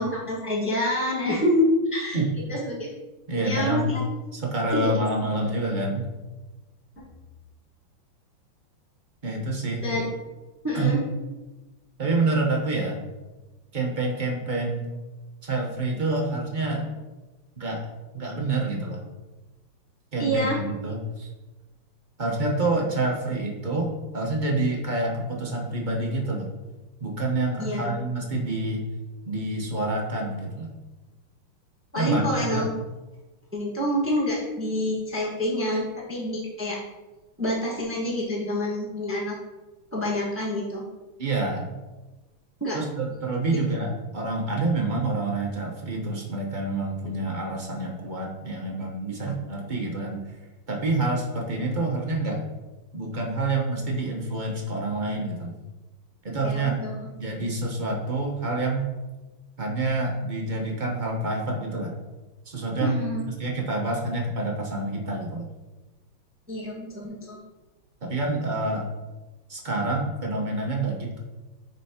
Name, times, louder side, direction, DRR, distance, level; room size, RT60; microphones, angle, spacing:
voice 1, 0.0-2.2 2.5-2.9 3.4-4.0 4.7-4.9 9.8-10.1 10.6-11.0 20.2-20.6 27.6-28.0 31.9-32.7 33.5-36.8 37.4-39.4 39.9-40.8 42.6-42.8 56.4-57.0 62.8-63.2 66.5-67.4, left 1 dB, 10° right, -4 dB, 0.9 m, -27 dB
voice 2, 3.3-3.9 4.3-6.1 9.2-9.9 10.7-10.9 12.0-13.0 13.7-14.9 15.4-16.9 17.6-17.8 18.1-19.1 20.1-21.3 22.2-26.5 27.0-28.8 29.3-30.7 31.9-32.7 41.2-41.7 42.7-50.4 50.7-52.4 52.9-55.6 56.2-56.8 57.2-58.9 59.6-62.0 62.5-63.0 63.4-65.5 68.0-68.8 69.5-71.2, right 2 dB, 45° right, -1 dB, 0.6 m, -27 dB
9.9 x 4.4 x 2.8 m, 1.1 s
omnidirectional pair, 2.4 m